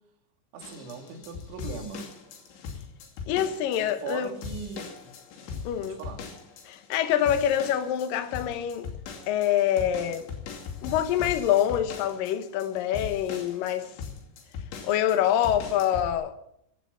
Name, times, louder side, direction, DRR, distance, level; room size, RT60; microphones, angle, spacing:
voice 1, 0.5-2.1 3.8-5.1 5.8-6.3, right 5 dB, 90° right, 4.8 m, -39 dB
sound 1, 0.6-16.1, left 6 dB, 90° left, 5.1 m, -40 dB
voice 2, 3.3-4.3 5.6-6.0 6.7-8.9 9.3-10.3 10.8-13.9 14.8-16.3, left 10 dB, 70° left, 2.3 m, -25 dB
15.5 x 12.0 x 5.7 m
omnidirectional pair, 5.2 m